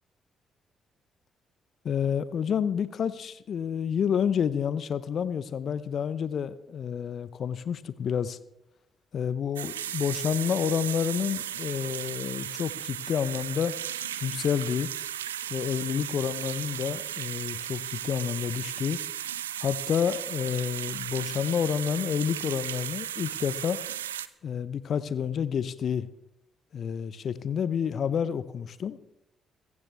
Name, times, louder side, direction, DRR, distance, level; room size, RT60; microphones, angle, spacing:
voice 1, 1.8-8.4 9.1-13.7 14.2-14.9 15.5-19.0 19.6-23.8 24.4-26.1 26.7-29.0, left 8 dB, 55° left, 0.7 m, -29 dB
sound 1, 9.6-24.3, right 11 dB, 85° right, 0.4 m, -35 dB
16.0 x 15.0 x 3.4 m
figure-of-eight pair, 40°, 0 cm